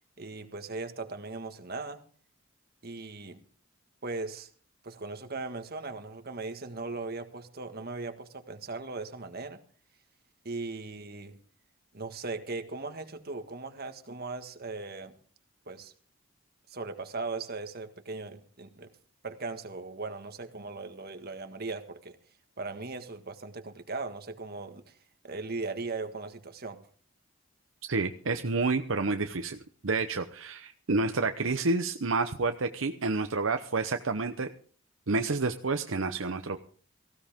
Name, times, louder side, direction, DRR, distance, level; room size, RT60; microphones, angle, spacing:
voice 1, 0.2-2.1 2.8-3.4 4.0-4.5 4.8-9.6 10.5-11.4 11.9-15.2 15.7-15.9 16.7-18.9 19.2-22.2 22.6-25.0 25.2-26.8, right 3 dB, 50° right, 1.7 m, -38 dB
voice 2, 27.9-34.5 35.1-36.6, right 3 dB, 70° right, 0.9 m, -29 dB
18.0 x 15.5 x 3.6 m
head